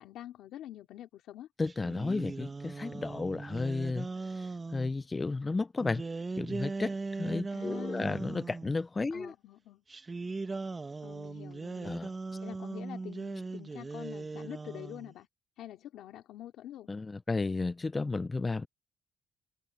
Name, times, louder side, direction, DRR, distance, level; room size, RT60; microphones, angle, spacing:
voice 1, 0.0-1.5 7.5-8.3 9.1-9.8 11.0-12.0 12.4-15.3 15.6-16.9, left 12 dB, 90° left, 2.9 m, -46 dB
voice 2, 1.6-6.0 6.4-9.3 11.8-12.1 16.9-18.7, left 3 dB, 25° left, 0.4 m, -33 dB
sound 1, 1.7-4.9 5.8-8.8 9.9-15.1, right 3 dB, 25° right, 1.1 m, -39 dB
cardioid pair, 100°, 0 cm